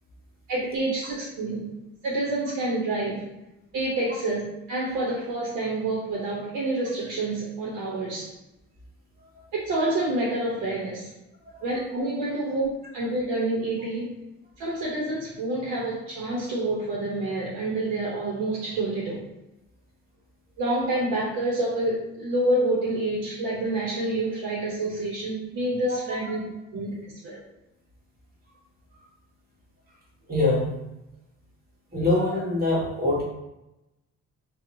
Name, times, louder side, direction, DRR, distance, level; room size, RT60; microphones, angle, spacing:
voice 1, 0.5-1.7 2.0-3.3 3.7-8.3 9.5-11.1 11.6-14.1 14.6-19.2 20.6-27.0 27.2-27.4, right 2 dB, 85° right, -5 dB, 0.6 m, -28 dB
voice 2, 30.3-30.7 31.9-33.2, left 2 dB, 30° right, -5 dB, 1.1 m, -23 dB
2.8 x 2.1 x 2.5 m, 0.93 s
cardioid pair, 90°, 30 cm